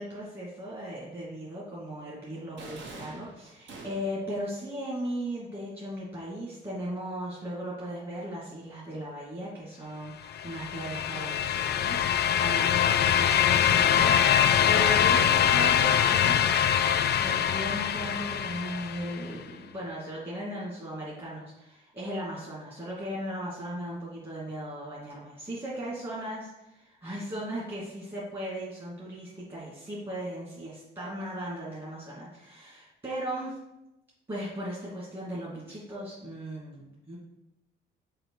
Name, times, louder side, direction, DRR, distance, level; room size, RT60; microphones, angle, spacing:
voice 1, 0.0-16.4 17.2-33.6 34.3-37.2, equal, 25° right, -7 dB, 2.2 m, -37 dB
sound 1, 2.6-4.3, right 3 dB, 70° right, 1.1 m, -45 dB
sound 2, 10.3-19.2, left 9 dB, 55° left, 0.5 m, -24 dB
5.0 x 4.4 x 4.7 m, 0.92 s
cardioid pair, 90°, 20 cm